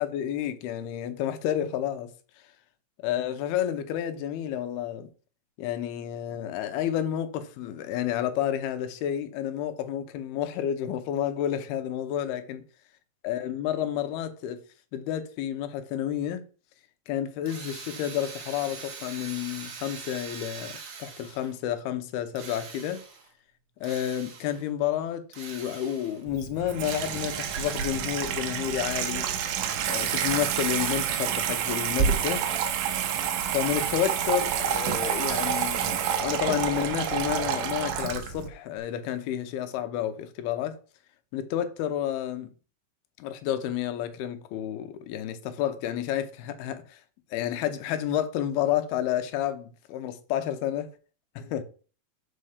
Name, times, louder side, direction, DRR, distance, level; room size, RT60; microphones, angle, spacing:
voice 1, 0.0-2.1 3.0-5.1 5.6-12.6 13.2-14.6 14.9-16.4 17.1-23.0 23.8-29.3 29.8-32.5 33.5-40.8 41.3-42.5 43.2-47.0 47.3-50.9 51.5-51.6, left 10 dB, 80° left, 2.7 m, -30 dB
Drill, 17.5-21.6 22.3-23.3 23.8-24.7 25.3-26.2 26.8-28.4 28.8-31.4, right 5 dB, 60° right, 1.4 m, -43 dB
Water tap faucet / Sink (filling or washing), 26.3-38.5, right 8 dB, 75° right, 2.1 m, -28 dB
5.6 x 5.1 x 6.5 m
omnidirectional pair, 4.6 m